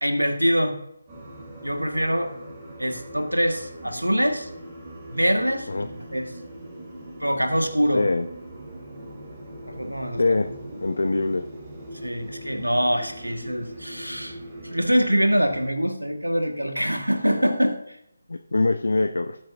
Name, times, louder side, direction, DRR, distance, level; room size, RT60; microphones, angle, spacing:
voice 1, 0.0-0.8 1.6-2.3 2.8-4.5 5.1-6.3 7.2-8.0 9.7-10.2 12.0-14.4 14.6-18.0, equal, 85° right, 6 dB, 1.5 m, -24 dB
sound 1, 1.1-15.7, right 1 dB, 20° right, 3.3 m, -41 dB
voice 2, 7.9-8.3 10.1-10.5 10.8-11.4 18.3-19.4, left 3 dB, 60° left, 7 dB, 0.8 m, -23 dB
19.5 x 9.0 x 2.5 m, 0.77 s
figure-of-eight pair, 150°, 0 cm